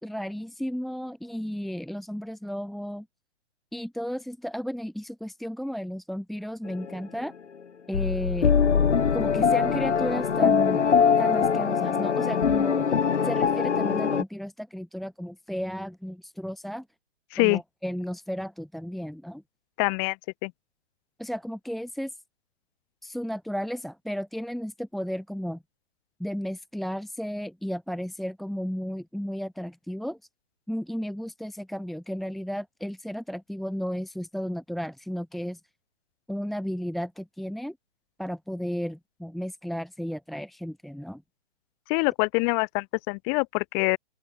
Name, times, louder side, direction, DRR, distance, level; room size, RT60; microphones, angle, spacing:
voice 1, 0.0-3.1 3.7-7.3 7.9-8.5 9.1-10.8 11.2-16.8 17.4-19.4 21.2-22.2 23.0-25.6 26.2-30.2 30.7-35.6 36.3-37.8 38.2-41.2, equal, ahead, 2.2 m, -33 dB
sound 1, 6.7-7.0 7.9-14.2, left 6 dB, 90° left, 2.9 m, -22 dB
voice 2, 19.8-20.2 20.4-20.5 41.9-44.0, left 40 dB or more, 20° left, 7.4 m, -25 dB
open air
hypercardioid pair, 165°, 34 cm